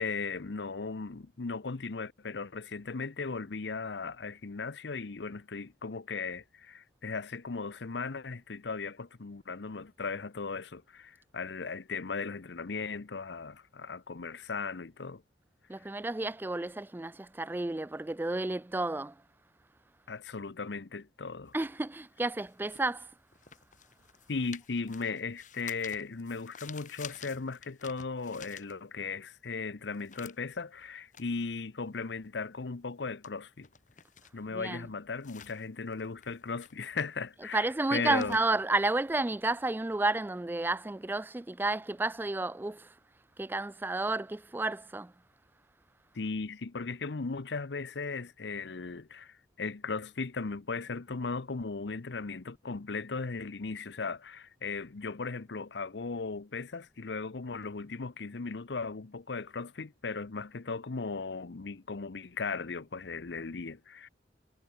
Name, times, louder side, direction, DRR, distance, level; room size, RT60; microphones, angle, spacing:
voice 1, 0.0-15.2 20.1-21.5 24.3-33.7 34.3-38.4 46.1-64.1, left 4 dB, 80° left, 0.8 m, -37 dB
voice 2, 15.7-19.1 21.5-23.1 34.5-34.9 37.5-42.9 43.4-45.1, right 2 dB, 10° right, 0.3 m, -31 dB
sound 1, 21.5-29.2 29.6-39.6, left 8 dB, 45° left, 2.1 m, -52 dB
head